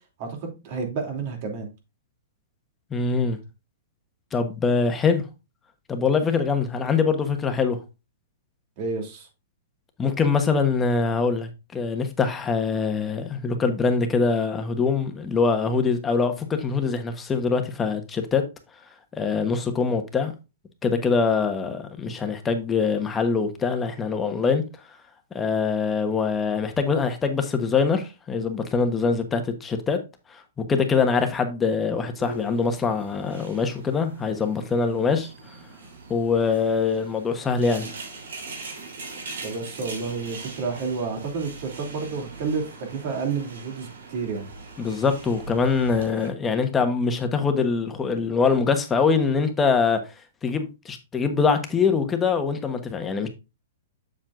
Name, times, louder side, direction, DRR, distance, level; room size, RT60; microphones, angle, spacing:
voice 1, 0.2-1.7 8.8-9.3 39.4-44.5, right 4 dB, 50° right, 2.9 m, -30 dB
voice 2, 2.9-3.4 4.3-5.2 5.9-7.8 10.0-18.4 19.2-20.3 20.8-24.6 25.3-30.0 30.3-30.4 30.7-35.3 36.1-37.9 44.8-50.0 50.4-53.3, left 5 dB, 15° left, 1.2 m, -23 dB
sound 1, 32.2-46.3, right 3 dB, 80° right, 3.4 m, -41 dB
7.4 x 7.2 x 2.6 m
hypercardioid pair, 135°, 0 cm